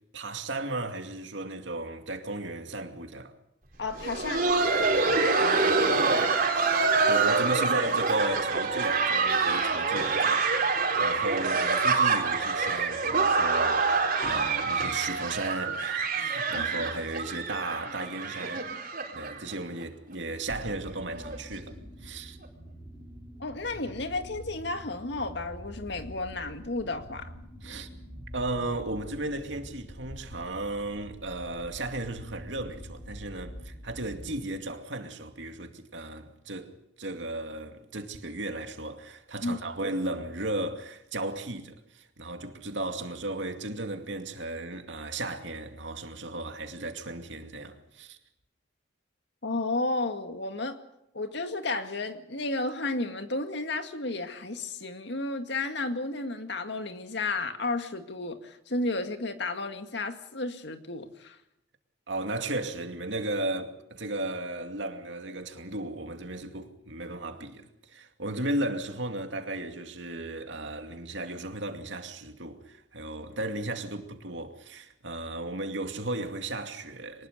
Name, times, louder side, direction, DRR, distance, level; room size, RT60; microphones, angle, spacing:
voice 1, 0.1-3.3 4.9-6.4 7.1-18.8 19.1-21.7 22.0-22.4 27.6-27.9 28.3-48.2 62.1-77.3, right 2 dB, 75° right, 2.4 m, -35 dB
voice 2, 3.8-4.5 16.5-16.7 23.4-27.3 39.4-39.6 49.4-50.8 51.1-61.4, left 2 dB, 65° left, 2.1 m, -32 dB
Laughter, 3.8-19.5 19.8-19.9 20.5-20.6 21.1-21.4 22.4-22.5, right 4 dB, 50° right, 4.4 m, -26 dB
sound 1, 20.5-34.6, equal, 25° left, 6.8 m, -45 dB
24.0 x 20.0 x 6.7 m
head